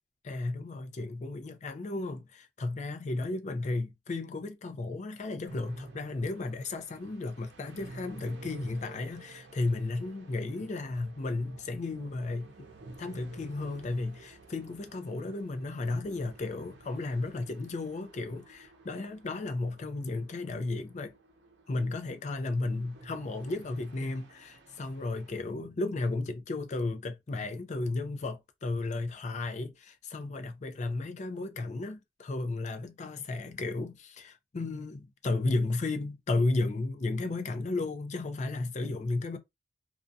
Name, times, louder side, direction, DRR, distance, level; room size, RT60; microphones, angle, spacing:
voice 1, 0.2-12.7 13.0-21.1 21.7-39.4, left 2 dB, 40° left, 0.4 m, -34 dB
sound 1, 5.4-25.4, right 2 dB, 80° right, 0.7 m, -52 dB
2.4 x 2.1 x 2.6 m
head